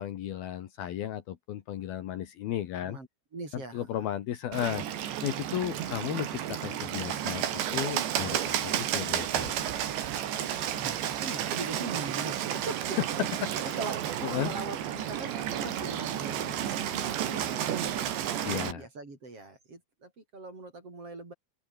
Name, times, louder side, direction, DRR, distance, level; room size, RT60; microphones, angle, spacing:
voice 1, 0.0-3.0 3.7-4.9 5.2-9.6 13.4-13.8 14.2-14.5 18.4-18.8, left 11 dB, 65° left, 2.5 m, -34 dB
voice 2, 2.8-4.1 10.4-13.0 13.5-14.0 14.3-21.3, right 3 dB, 30° right, 6.2 m, -42 dB
Bird, 4.5-18.7, right 10 dB, 65° right, 4.3 m, -32 dB
open air
omnidirectional pair, 5.9 m